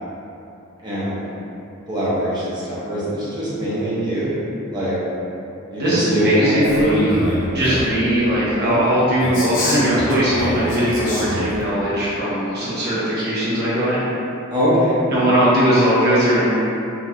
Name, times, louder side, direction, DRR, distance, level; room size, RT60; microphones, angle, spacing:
voice 1, 0.8-1.2 1.9-5.0 5.7-6.6 8.6-8.9 14.5-15.3, equal, 20° right, -10 dB, 0.7 m, -22 dB
voice 2, 5.8-7.2 7.5-14.1 15.1-16.5, equal, 50° right, -10 dB, 0.9 m, -19 dB
Male speech man speaking, 6.6-8.0 9.2-11.6, left 1 dB, 60° left, 0.7 m, -25 dB
3.0 x 2.7 x 2.3 m, 2.9 s
head